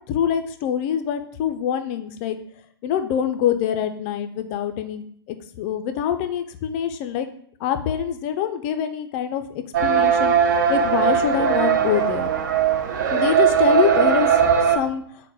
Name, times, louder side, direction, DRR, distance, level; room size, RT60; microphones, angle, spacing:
voice 1, 0.1-2.4 2.8-7.3 7.6-12.3 13.1-15.0, left 9 dB, 30° left, 8 dB, 0.3 m, -25 dB
sound 1, 9.7-14.8, right 7 dB, 50° right, 0.4 m, -19 dB
4.4 x 2.1 x 4.5 m, 0.62 s
figure-of-eight pair, 120°, 13 cm